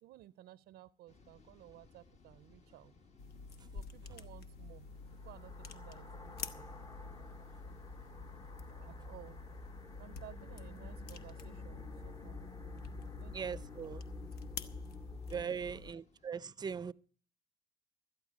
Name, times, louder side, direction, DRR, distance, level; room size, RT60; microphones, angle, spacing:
voice 1, 0.0-2.9 3.7-4.9 5.2-6.9 7.2-7.3 8.8-9.4 10.0-13.9 14.2-14.3 14.6-14.7 15.4-15.8, right 14 dB, 75° right, 0.5 m, -57 dB
sound 1, 1.1-16.3, left 4 dB, 40° left, 1.3 m, -67 dB
sound 2, 3.2-15.9, left 4 dB, 70° left, 1.1 m, -49 dB
sound 3, 4.9-15.4, left 3 dB, 25° left, 0.8 m, -49 dB
voice 2, 13.3-14.0 15.3-16.9, right 6 dB, 25° right, 0.5 m, -40 dB
13.5 x 11.0 x 4.8 m
cardioid pair, 110°, 17 cm